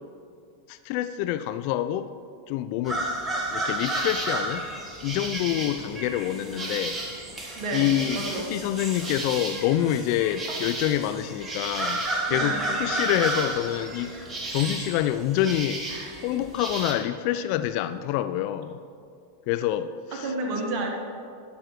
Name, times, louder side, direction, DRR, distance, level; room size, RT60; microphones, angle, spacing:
voice 1, 0.7-2.1 2.5-3.0 3.5-4.7 5.0-7.0 7.7-8.2 8.5-14.1 14.5-15.8 16.2-18.8 19.5-20.3, left 12 dB, 45° left, 11 dB, 0.3 m, -27 dB
sound 1, 2.9-16.9, right 2 dB, 15° right, 1.4 m, -32 dB
voice 2, 7.6-8.5 12.3-12.7 15.9-16.1 20.1-20.9, right 2 dB, 40° right, 0 dB, 1.7 m, -31 dB
12.0 x 6.1 x 4.7 m, 2.3 s
figure-of-eight pair, 90°, 0 cm